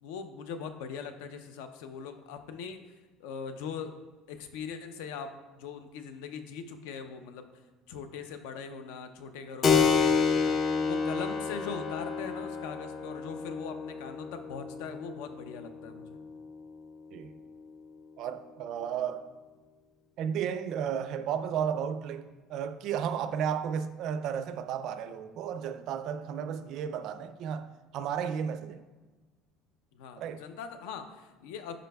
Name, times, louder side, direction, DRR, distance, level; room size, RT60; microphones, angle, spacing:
voice 1, 0.0-2.8 3.2-4.0 4.3-7.5 7.9-16.2 29.9-31.8, left 6 dB, 80° left, 0.6 m, -41 dB
Keyboard (musical), 9.6-17.8, left 5 dB, 30° left, 0.4 m, -30 dB
voice 2, 18.2-19.3 20.2-28.8 30.2-30.4, right 8 dB, 45° right, 0.3 m, -33 dB
10.0 x 5.0 x 2.3 m
cardioid pair, 170°, 0 cm